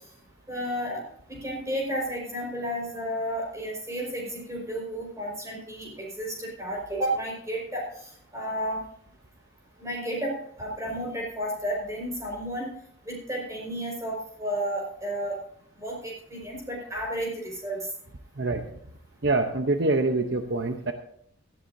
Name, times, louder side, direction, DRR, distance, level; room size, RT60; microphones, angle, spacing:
voice 1, 0.5-1.0 1.3-8.8 9.8-12.7 13.0-15.4 15.8-17.9, equal, 15° right, -2 dB, 5.1 m, -32 dB
voice 2, 19.2-20.9, right 2 dB, 60° right, 5 dB, 0.9 m, -25 dB
17.0 x 13.5 x 2.7 m, 0.65 s
head